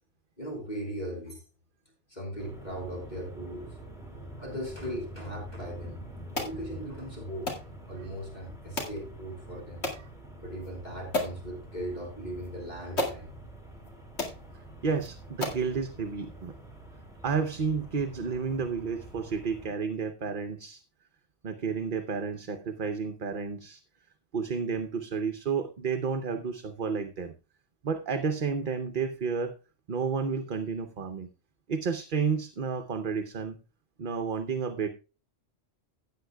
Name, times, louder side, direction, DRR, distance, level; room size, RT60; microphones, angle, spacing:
voice 1, 0.4-1.4 2.1-3.7 4.4-6.0 6.3-7.5 7.9-9.8 10.4-13.3, equal, 40° left, -1 dB, 4.2 m, -38 dB
sound 1, 2.4-19.7, right 1 dB, 5° right, 2.7 m, -46 dB
sound 2, 6.3-6.6 7.5-7.7 8.8-9.0 9.8-10.0 10.6-10.7 11.1-11.4 12.4-12.5 13.0-13.2 13.8-13.9 14.2-14.4 15.0-15.1 15.4-15.7, left 2 dB, 75° left, 2.4 m, -32 dB
voice 2, 14.8-16.6 17.2-20.8 21.4-23.8 24.3-27.3 27.8-29.6 29.9-31.3 31.7-33.6 34.0-34.9, right 5 dB, 50° right, 8 dB, 0.9 m, -31 dB
16.5 x 8.7 x 2.3 m, 0.31 s
omnidirectional pair, 1.1 m